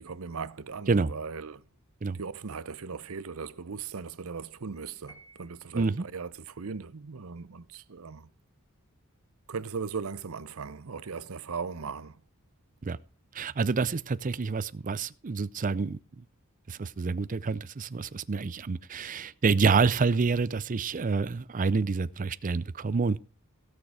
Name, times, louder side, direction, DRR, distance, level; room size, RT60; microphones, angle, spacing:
voice 1, 0.0-1.7 2.1-8.3 9.5-12.2, right 5 dB, 75° right, 0.7 m, -38 dB
Piano, 5.1-6.0, right 2 dB, 15° left, 3.4 m, -55 dB
voice 2, 5.7-6.0 12.8-13.0 13.3-16.0 16.7-23.2, right 4 dB, 35° right, 0.5 m, -27 dB
16.5 x 6.6 x 4.8 m
head